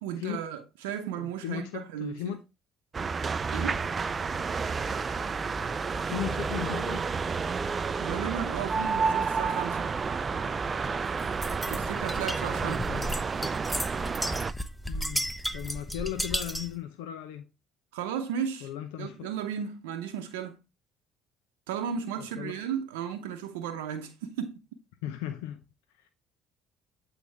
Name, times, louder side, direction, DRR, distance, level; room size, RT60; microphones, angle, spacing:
voice 1, 0.0-2.4 3.5-3.8 8.0-9.9 11.7-13.0 17.9-18.7 19.0-20.6 21.7-24.6, right 8 dB, 80° right, 0.7 m, -35 dB
voice 2, 1.2-2.4 6.1-7.1 12.6-13.1 14.9-17.5 18.6-19.3 22.2-22.6 25.0-25.6 26.0-26.1, left 12 dB, 80° left, 0.6 m, -37 dB
sound 1, 2.9-14.5, right 5 dB, 35° right, 0.4 m, -30 dB
sound 2, 11.4-16.8, equal, ahead, 0.7 m, -34 dB
8.0 x 3.9 x 3.3 m
hypercardioid pair, 65°, 0 cm